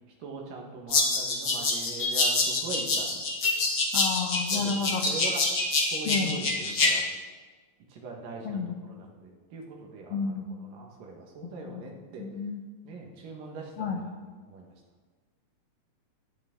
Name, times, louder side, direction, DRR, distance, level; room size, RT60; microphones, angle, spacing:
voice 1, 0.2-3.2 4.5-5.4 5.9-7.0 7.9-8.6 8.9-10.3 10.6-12.3 12.8-14.1 14.5-14.7, right 3 dB, 75° right, 0 dB, 3.3 m, -41 dB
sound 1, 0.9-6.9, left 3 dB, 40° left, 2.1 m, -26 dB
voice 2, 3.9-5.1 6.0-6.4 8.4-8.7 10.1-10.5 11.6-11.9 12.2-12.6 13.8-14.0, left 5 dB, 75° left, 3 dB, 1.4 m, -31 dB
23.0 x 8.6 x 3.8 m, 1.4 s
omnidirectional pair, 3.9 m